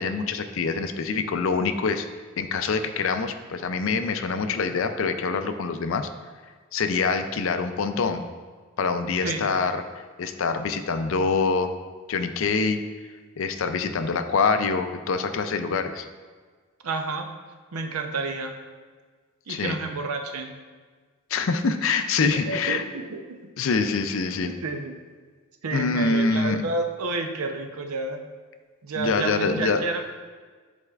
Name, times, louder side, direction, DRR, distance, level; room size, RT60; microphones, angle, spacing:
voice 1, 0.0-2.1 2.4-6.1 6.7-8.3 8.8-11.7 12.1-12.8 13.4-16.1 19.5-19.8 21.3-22.8 23.6-24.5 25.7-26.6 29.0-29.8, left 4 dB, 65° left, 9 dB, 0.4 m, -25 dB
voice 2, 9.2-9.5 16.8-17.3 17.7-18.6 19.5-20.6 22.5-23.4 24.5-24.9 25.6-28.2 28.8-30.0, right 3 dB, 85° right, 4 dB, 0.6 m, -30 dB
9.8 x 4.2 x 2.4 m, 1.5 s
head